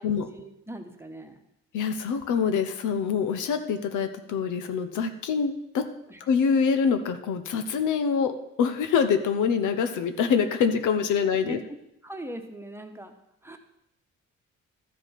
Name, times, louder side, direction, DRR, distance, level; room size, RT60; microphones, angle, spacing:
voice 1, 0.0-1.4 6.1-6.2 11.4-11.6 12.0-13.1 13.4-13.6, right 1 dB, 10° right, 5 dB, 1.2 m, -40 dB
voice 2, 1.7-5.8 6.2-11.6, left 6 dB, 85° left, 9 dB, 1.0 m, -25 dB
13.0 x 5.1 x 5.9 m, 0.81 s
cardioid pair, 90°, 30 cm